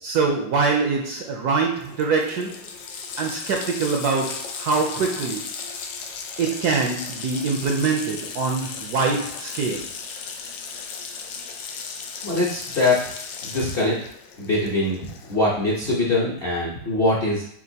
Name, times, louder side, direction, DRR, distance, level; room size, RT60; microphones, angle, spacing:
voice 1, 0.0-2.6 3.2-5.4 6.4-9.9, right 4 dB, 70° right, 1 dB, 1.0 m, -24 dB
Water tap faucet, 1.5-1.6 1.8-15.5, left 5 dB, 75° left, 1.3 m, -36 dB
voice 2, 12.2-13.0 13.4-14.0 14.4-15.0 15.3-17.4, left 2 dB, 45° left, -6 dB, 0.8 m, -22 dB
7.4 x 2.5 x 2.8 m, 0.65 s
omnidirectional pair, 2.1 m